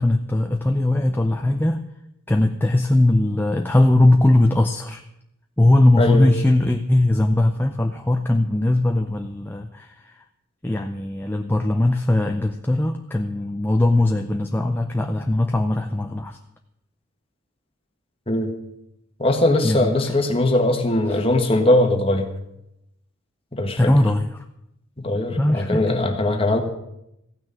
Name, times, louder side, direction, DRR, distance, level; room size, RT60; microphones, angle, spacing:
voice 1, 0.0-1.8 2.3-5.0 5.6-10.1 10.6-16.4 19.6-19.9 21.1-21.2 23.8-24.4 25.4-26.0, left 1 dB, 10° left, 4 dB, 0.5 m, -20 dB
voice 2, 6.0-6.3 18.3-18.5 19.2-22.3 23.5-23.9 25.0-26.6, left 1 dB, 25° left, 4 dB, 1.5 m, -20 dB
15.0 x 6.2 x 9.0 m, 0.83 s
head